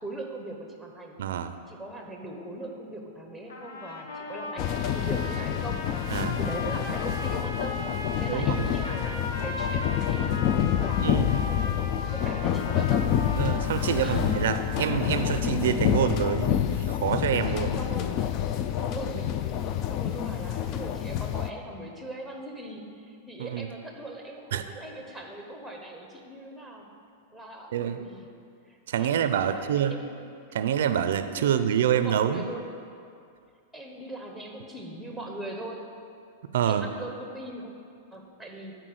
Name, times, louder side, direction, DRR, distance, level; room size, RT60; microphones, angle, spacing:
voice 1, 0.0-1.1 1.7-6.1 6.4-7.9 8.2-13.1 13.6-13.7 13.9-14.3 15.1-15.2 17.7-19.3 19.9-26.9 27.3-28.3 28.6-30.5 31.4-32.7 33.7-35.9 36.6-37.7 38.1-38.7, right 1 dB, 5° left, 1 dB, 1.1 m, -40 dB
voice 2, 1.2-1.6 6.1-6.4 8.3-8.7 11.0-11.3 13.4-17.8 23.4-23.7 24.5-24.6 27.7-28.0 28.9-30.0 30.5-32.4 36.5-36.9, right 9 dB, 75° right, 10 dB, 0.5 m, -26 dB
sound 1, 3.5-15.2, left 2 dB, 85° left, 1.2 m, -37 dB
sound 2, 4.6-21.5, left 10 dB, 35° left, 0.4 m, -28 dB
10.0 x 4.4 x 7.8 m, 2.4 s
supercardioid pair, 150°, 0 cm